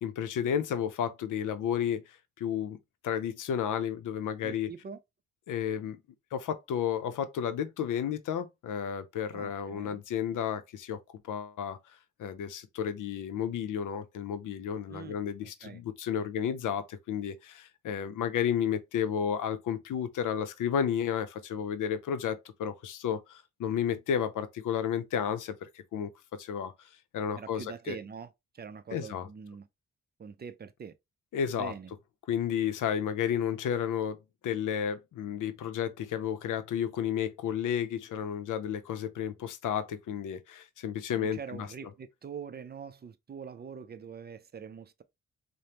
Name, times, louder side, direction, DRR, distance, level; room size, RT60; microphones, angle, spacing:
voice 1, 0.0-2.0 2.4-2.8 3.0-4.7 5.5-5.9 6.7-10.6 10.9-11.0 11.3-11.8 12.2-15.4 16.0-16.8 17.1-17.3 17.9-23.2 23.6-25.4 25.9-26.1 26.5-26.7 27.1-28.0 28.9-29.3 31.3-31.7 32.3-34.1 34.4-40.4 40.8-41.7, left 8 dB, 85° left, 0.6 m, -31 dB
voice 2, 4.4-5.0 9.3-10.0 14.9-15.2 15.4-15.8 16.1-16.3 27.3-29.7 30.2-30.9 31.5-31.9 41.2-45.0, right 6 dB, 35° right, 0.4 m, -44 dB
5.0 x 2.0 x 2.9 m
cardioid pair, 115°, 31 cm